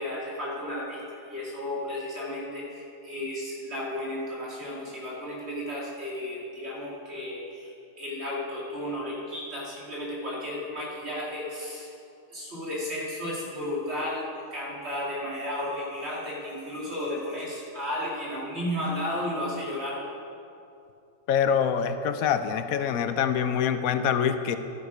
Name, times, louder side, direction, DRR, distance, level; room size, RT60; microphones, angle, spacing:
voice 1, 0.0-11.9 12.3-20.0, left 1 dB, 50° right, -5 dB, 2.8 m, -33 dB
voice 2, 21.3-24.6, left 8 dB, 80° left, 10 dB, 1.0 m, -25 dB
11.5 x 9.5 x 5.1 m, 2.6 s
omnidirectional pair, 1.5 m